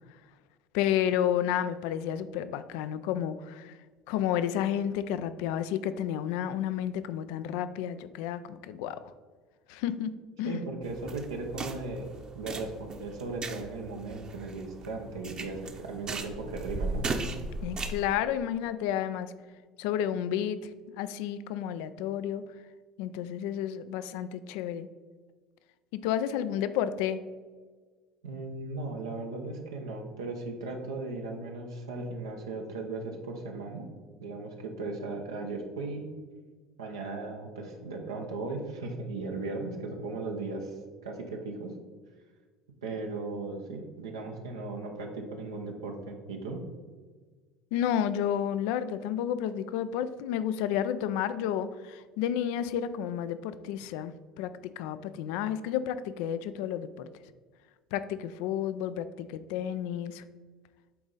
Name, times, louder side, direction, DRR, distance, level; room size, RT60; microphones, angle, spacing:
voice 1, 0.7-3.7 4.1-9.1 9.7-10.1 10.4-10.6 17.6-19.3 19.8-20.6 21.0-22.4 23.0-24.9 25.9-27.2 47.7-54.5 54.8-57.1 57.9-60.2, left 10 dB, 70° left, 13 dB, 0.4 m, -31 dB
voice 2, 10.4-12.1 12.3-17.1 28.2-33.9 34.2-36.1 36.8-40.7 41.0-41.7 42.8-46.6, right 3 dB, 90° right, 1 dB, 0.9 m, -37 dB
sound 1, 10.8-18.1, right 3 dB, 35° right, 0.9 m, -37 dB
8.4 x 3.9 x 4.0 m, 1.5 s
hypercardioid pair, 70°, 2 cm